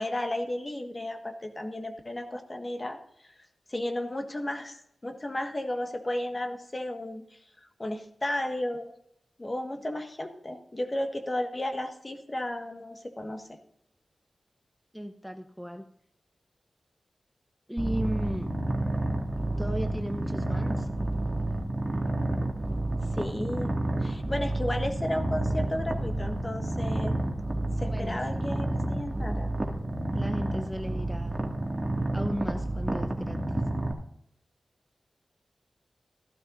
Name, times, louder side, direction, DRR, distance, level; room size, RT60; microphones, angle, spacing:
voice 1, 0.0-3.3 3.7-8.9 9.4-13.6 23.1-23.7 24.0-27.2 27.8-29.5, left 1 dB, 35° left, 6 dB, 1.5 m, -34 dB
voice 2, 14.9-15.8 17.7-18.5 19.6-20.9 27.9-28.4 30.1-31.4 32.1-33.4, equal, ahead, 7 dB, 0.7 m, -35 dB
Purr, 17.8-33.9, right 1 dB, 25° right, 2.1 m, -30 dB
14.5 x 12.5 x 2.6 m, 0.75 s
cardioid pair, 50°, 0 cm